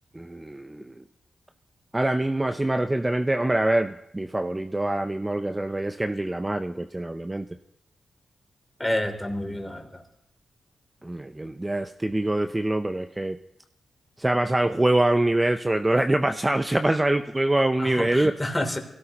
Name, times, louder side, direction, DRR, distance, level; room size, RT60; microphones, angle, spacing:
voice 1, 0.1-0.9 1.9-7.5 11.0-13.4 14.2-18.3, right 1 dB, 20° right, 8 dB, 0.6 m, -24 dB
voice 2, 8.8-10.0 17.8-18.8, left 1 dB, 15° left, 3 dB, 3.0 m, -29 dB
23.5 x 17.0 x 2.9 m, 0.80 s
cardioid pair, 55°, 0 cm